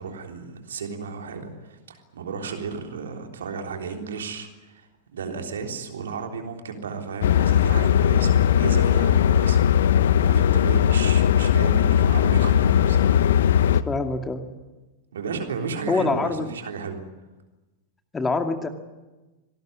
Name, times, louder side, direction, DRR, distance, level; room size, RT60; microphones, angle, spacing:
voice 1, 0.0-13.5 15.1-17.0, right 5 dB, 65° right, 3 dB, 3.5 m, -34 dB
sound 1, 7.2-13.8, left 9 dB, 60° left, 0.9 m, -18 dB
voice 2, 13.7-14.5 15.9-16.5 18.1-18.7, left 3 dB, 15° left, 6 dB, 2.3 m, -25 dB
26.0 x 19.0 x 9.9 m, 1.1 s
figure-of-eight pair, 90°, 0 cm